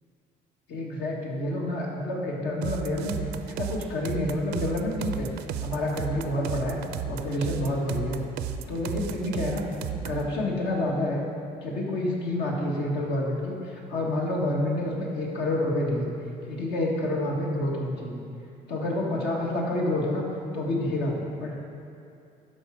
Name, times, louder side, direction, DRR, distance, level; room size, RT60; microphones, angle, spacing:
voice 1, 0.7-3.2 3.5-5.3 5.6-6.8 7.1-8.2 8.7-9.6 9.9-11.2 11.6-16.1 16.5-18.2 18.7-20.3 20.5-21.5, left 1 dB, 80° left, -2 dB, 1.7 m, -28 dB
sound 1, 2.6-10.3, right 9 dB, 80° right, 0.5 m, -34 dB
12.0 x 4.9 x 4.7 m, 2.5 s
cardioid pair, 110°, 17 cm